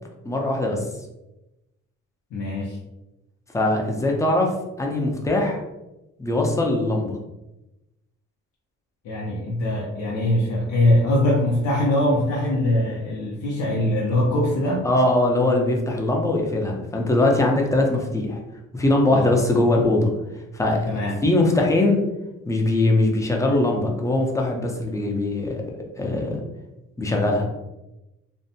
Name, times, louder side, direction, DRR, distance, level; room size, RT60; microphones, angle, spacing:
voice 1, 0.2-0.8 3.5-4.5 4.8-5.6 6.2-7.2 14.8-18.4 18.7-20.1 20.5-20.9 21.2-22.0 22.5-25.6 26.0-26.4 27.0-27.5, left 2 dB, 10° left, 0 dB, 0.5 m, -21 dB
voice 2, 2.3-2.8 9.0-14.9 19.1-19.3 20.9-21.2, left 1 dB, 80° left, -4 dB, 0.6 m, -22 dB
2.6 x 2.1 x 2.7 m, 0.96 s
cardioid pair, 90°, 30 cm